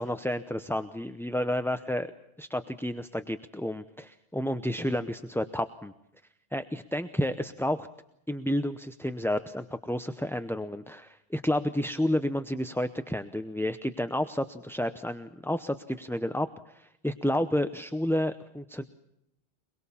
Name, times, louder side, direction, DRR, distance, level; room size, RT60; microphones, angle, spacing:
voice 1, 0.0-2.1 2.4-5.9 6.5-7.9 8.3-18.8, left 1 dB, 5° left, 9 dB, 0.6 m, -30 dB
23.5 x 22.5 x 7.1 m, 0.80 s
omnidirectional pair, 1.0 m